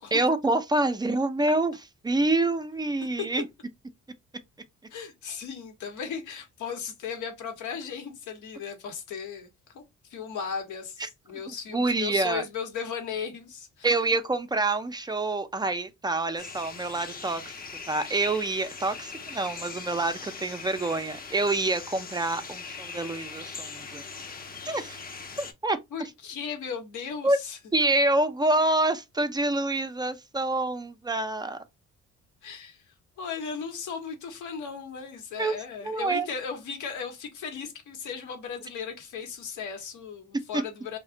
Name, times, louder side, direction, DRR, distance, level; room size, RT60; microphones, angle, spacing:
voice 1, 0.1-1.8 2.0-3.4 11.0-11.1 11.5-12.4 13.8-17.4 17.9-24.0 24.6-25.0 25.4-25.8 27.2-27.4 27.7-31.6 35.4-35.6 35.8-36.3, right 2 dB, 15° right, 0.4 m, -27 dB
voice 2, 4.9-9.5 9.7-9.8 10.1-13.9 25.9-27.6 32.4-32.8 33.2-41.0, left 6 dB, 80° left, 1.0 m, -36 dB
sound 1, 16.4-25.5, left 5 dB, 30° left, 0.6 m, -41 dB
2.4 x 2.1 x 3.6 m
cardioid pair, 90°, 30 cm